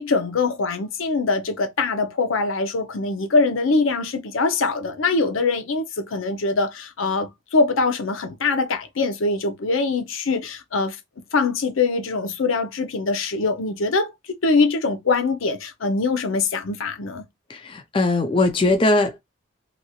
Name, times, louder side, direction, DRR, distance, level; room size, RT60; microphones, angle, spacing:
voice 1, 0.0-11.0 11.3-17.3, left 3 dB, 85° left, 0.6 m, -23 dB
voice 2, 17.5-19.2, left 2 dB, 25° left, 0.3 m, -20 dB
2.9 x 2.7 x 2.3 m
head